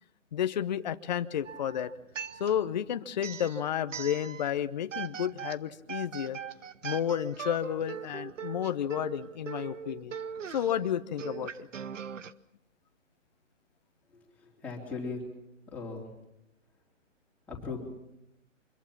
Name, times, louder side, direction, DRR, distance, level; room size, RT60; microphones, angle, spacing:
voice 1, 0.3-1.9 2.4-6.4 6.8-10.1 10.5-11.7, left 9 dB, 35° left, 10 dB, 0.8 m, -31 dB
sound 1, 1.4-2.8 3.2-4.6 4.9-12.3, right 7 dB, 75° right, 1.1 m, -41 dB
voice 2, 14.1-15.3 15.7-16.1 17.5-17.8, left 4 dB, 5° left, -4 dB, 3.6 m, -38 dB
25.0 x 22.5 x 5.9 m, 0.86 s
hypercardioid pair, 160°, 38 cm